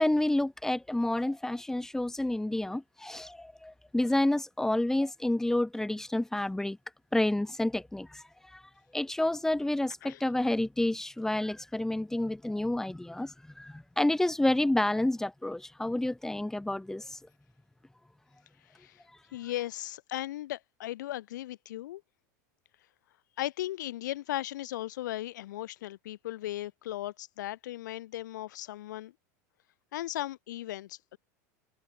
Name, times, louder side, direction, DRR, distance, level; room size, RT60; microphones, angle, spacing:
voice 1, 0.0-6.8 7.1-8.2 8.5-8.6 8.9-17.2, left 1 dB, 5° left, 1.3 m, -29 dB
voice 2, 19.3-22.0 23.4-29.1 29.9-31.2, left 14 dB, 80° left, 0.6 m, -37 dB
hypercardioid pair, 110°, 10 cm